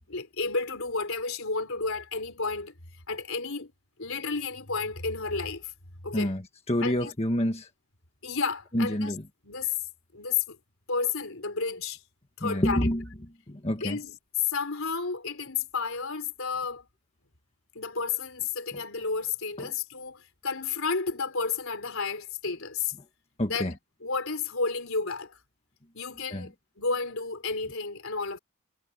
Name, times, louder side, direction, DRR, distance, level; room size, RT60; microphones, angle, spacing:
voice 1, 0.1-2.7 3.1-3.7 4.0-5.7 6.0-6.3 6.8-7.1 8.2-9.1 9.4-9.7 10.1-10.6 10.9-12.0 12.4-12.9 13.8-14.2 14.4-16.9 17.7-22.9 23.5-23.7 24.0-25.4 25.9-28.4, left 4 dB, 65° left, 3.9 m, -31 dB
voice 2, 6.7-7.7 8.7-9.2 12.4-13.0 13.5-14.0 18.7-18.8 19.6-19.7 23.4-23.7 26.3-26.5, equal, 30° left, 1.5 m, -27 dB
head